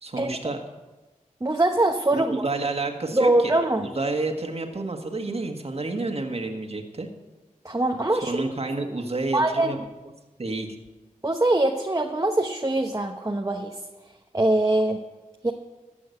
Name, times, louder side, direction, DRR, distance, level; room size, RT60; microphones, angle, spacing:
voice 1, 0.0-0.6 2.1-3.5 3.8-7.1 8.1-9.8 10.4-10.7, right 3 dB, 45° right, 3 dB, 1.8 m, -29 dB
voice 2, 1.4-2.4 3.1-3.9 7.6-8.4 9.3-9.8 11.2-13.8 14.3-15.0 15.4-15.5, right 2 dB, 25° right, 3 dB, 1.0 m, -23 dB
15.0 x 6.3 x 7.9 m, 1.1 s
cardioid pair, 45°, 14 cm